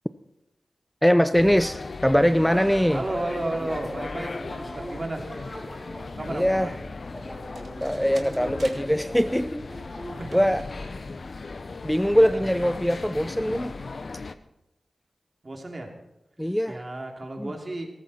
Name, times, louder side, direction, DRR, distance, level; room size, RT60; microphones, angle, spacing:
voice 1, 1.0-3.0 6.3-6.7 7.8-9.6 10.3-10.6 11.8-13.8 16.4-16.8 17.4-17.5, equal, 5° left, 12 dB, 0.5 m, -22 dB
sound 1, 1.3-14.4, left 3 dB, 60° left, 0.7 m, -38 dB
sound 2, 2.4-10.5, equal, 30° left, 4.1 m, -41 dB
voice 2, 2.9-5.3 6.2-6.7 10.2-10.4 12.1-12.5 15.4-15.9 16.7-17.9, right 2 dB, 40° right, 2 dB, 3.0 m, -33 dB
sound 3, 7.4-14.4, right 3 dB, 70° right, 2.0 m, -52 dB
18.5 x 14.5 x 4.3 m, 0.91 s
cardioid pair, 60°, 0 cm